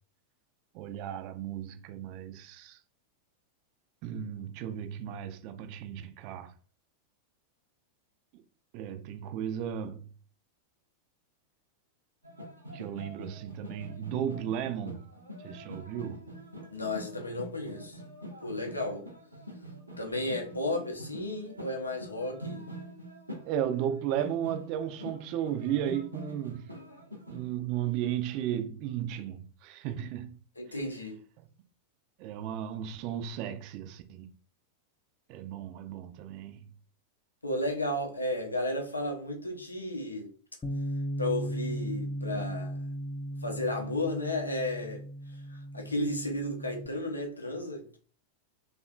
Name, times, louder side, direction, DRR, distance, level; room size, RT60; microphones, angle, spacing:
voice 1, 0.7-2.8 4.0-6.5 8.7-10.1 12.7-15.1 15.4-16.2 23.4-26.7 27.3-30.4 31.4-31.5 32.2-34.3 35.3-36.7, right 10 dB, 45° right, 0.4 m, -35 dB
sound 1, 12.2-27.5, right 1 dB, 85° right, 0.7 m, -45 dB
voice 2, 16.7-18.0 18.4-19.0 20.0-22.7 30.6-31.2 37.4-40.3 41.2-42.8 43.4-45.0 45.3-48.0, left 1 dB, 80° left, 0.6 m, -33 dB
Bass guitar, 40.6-46.9, equal, 15° left, 0.5 m, -36 dB
3.4 x 2.4 x 2.3 m
figure-of-eight pair, 90°, 0 cm